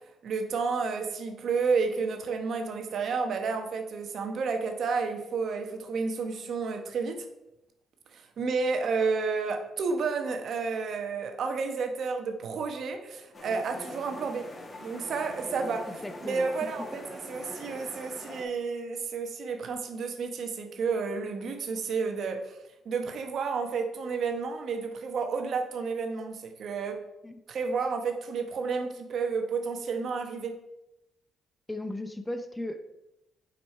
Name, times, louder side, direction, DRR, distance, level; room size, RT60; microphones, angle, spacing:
voice 1, 0.2-7.3 8.1-14.5 14.8-22.6 22.8-27.0 27.5-30.6, right 4 dB, 60° right, 5 dB, 1.1 m, -31 dB
sound 1, 13.3-18.4, left 1 dB, 35° left, 1.4 m, -43 dB
voice 2, 15.9-16.5 27.2-27.4 31.7-32.9, left 1 dB, 10° left, 9 dB, 0.6 m, -36 dB
7.5 x 5.5 x 4.3 m, 0.92 s
cardioid pair, 90°, 0 cm